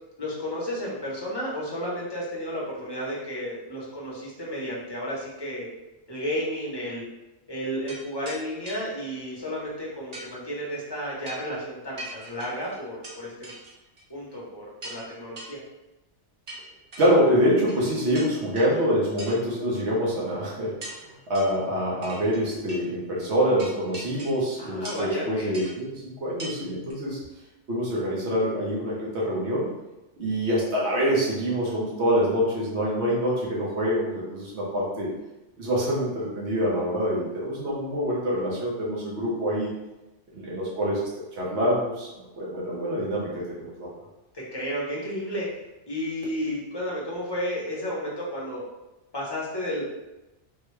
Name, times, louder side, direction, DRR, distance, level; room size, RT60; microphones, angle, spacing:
voice 1, 0.2-5.7 6.1-7.0 7.5-13.5 14.1-15.6 24.6-25.5 44.3-45.5 45.8-48.6 49.1-49.8, equal, 25° left, -5 dB, 0.8 m, -32 dB
sound 1, 7.9-8.0 8.2-8.4 8.6-8.8 10.1-10.3 11.2-11.5 12.0-13.2 13.4-14.0 14.3-14.4 14.8-15.0 15.4-15.5 16.5-17.1 17.7-17.9 18.1-18.8 19.2-19.4 19.7-19.8 20.8-21.0 21.3-21.6 22.0-22.4 22.7-22.8 23.6-24.4 24.8-25.1 25.5-25.7 26.4-26.5 26.9-27.0, right 1 dB, 40° right, 0.7 m, -40 dB
voice 2, 17.0-27.2 27.7-29.7 30.2-35.1 35.6-39.7 40.3-42.1 42.3-43.9, equal, 70° right, -6 dB, 1.3 m, -25 dB
3.7 x 2.2 x 3.2 m, 1.0 s
omnidirectional pair, 1.2 m